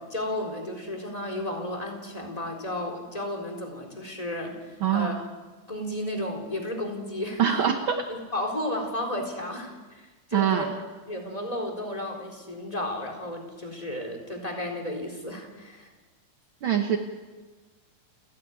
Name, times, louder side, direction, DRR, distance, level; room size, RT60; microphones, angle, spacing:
voice 1, 0.0-5.2 5.7-7.7 8.1-10.7 11.1-15.9, left 1 dB, 10° left, 1 dB, 3.7 m, -33 dB
voice 2, 4.8-5.2 7.4-8.0 10.3-10.7 16.6-17.0, right 8 dB, 70° right, 5 dB, 1.2 m, -24 dB
30.0 x 10.5 x 9.5 m, 1.3 s
omnidirectional pair, 3.9 m